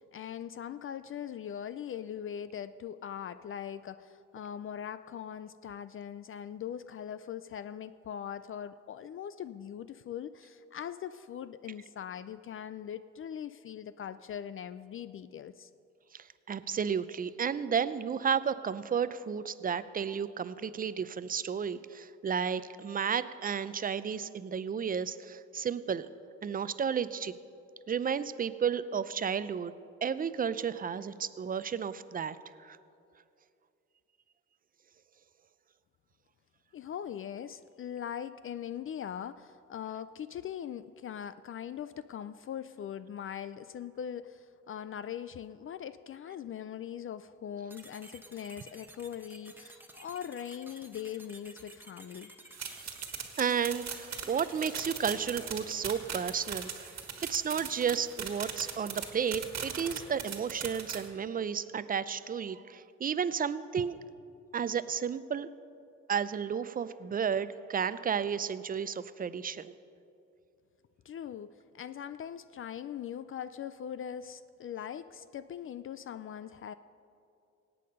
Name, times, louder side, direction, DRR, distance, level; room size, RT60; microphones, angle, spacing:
voice 1, 0.0-15.7 36.7-52.3 71.0-76.7, left 9 dB, 45° left, 14 dB, 0.4 m, -41 dB
voice 2, 16.1-26.1 26.4-27.3 27.9-29.7 30.0-32.8 53.4-56.9 57.3-64.0 64.5-65.5 66.1-69.7, right 7 dB, 30° right, 14 dB, 0.5 m, -32 dB
sound 1, 47.7-59.3, right 1 dB, 5° right, 1.2 m, -54 dB
sound 2, 52.5-61.0, right 8 dB, 60° right, 1.6 m, -39 dB
17.5 x 8.5 x 5.3 m, 2.6 s
cardioid pair, 90°, 30 cm